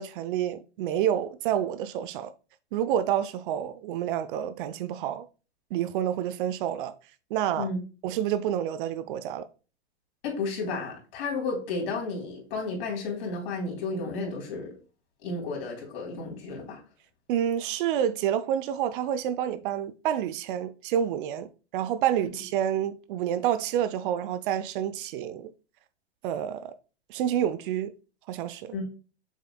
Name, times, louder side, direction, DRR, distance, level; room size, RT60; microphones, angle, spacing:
voice 1, 0.0-2.3 2.7-5.3 5.7-6.9 7.3-7.7 8.0-9.5 17.3-25.5 26.2-26.7 27.1-27.9 28.3-28.7, right 10 dB, 50° right, 0.7 m, -28 dB
voice 2, 10.2-14.8 15.2-16.8 22.2-22.3 28.7-28.8, left 3 dB, 60° left, 3.7 m, -32 dB
7.4 x 6.8 x 2.2 m
figure-of-eight pair, 100°, 34 cm